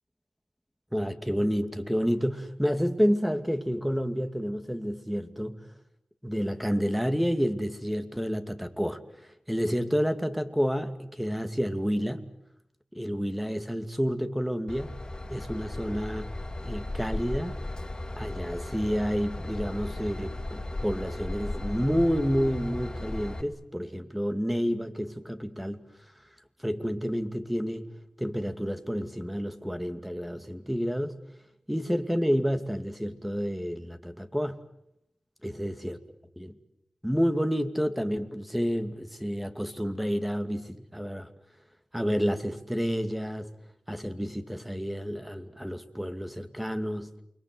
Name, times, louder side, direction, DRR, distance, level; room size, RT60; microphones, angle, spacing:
voice 1, 0.9-5.6 6.2-9.0 9.5-12.2 12.9-14.9 15.3-16.3 16.6-17.5 18.2-25.8 26.6-27.9 28.2-31.2 31.7-34.6 35.4-36.0 36.4-36.5 37.0-41.3 41.9-43.5 43.9-47.1, equal, 5° right, 8 dB, 2.4 m, -29 dB
Train / Engine, 14.7-23.4, left 2 dB, 30° left, 2.4 m, -36 dB
29.0 x 23.0 x 7.9 m, 0.79 s
cardioid pair, 50°, 2 cm